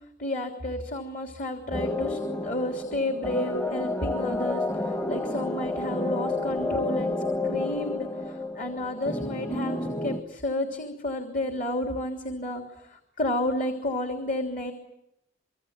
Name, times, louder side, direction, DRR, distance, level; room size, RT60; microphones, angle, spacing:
voice 1, 0.2-7.1 7.5-14.7, left 1 dB, 45° left, 4 dB, 3.2 m, -31 dB
sound 1, 1.7-10.2, left 2 dB, 15° left, 1.4 m, -30 dB
26.5 x 24.5 x 9.0 m, 0.83 s
head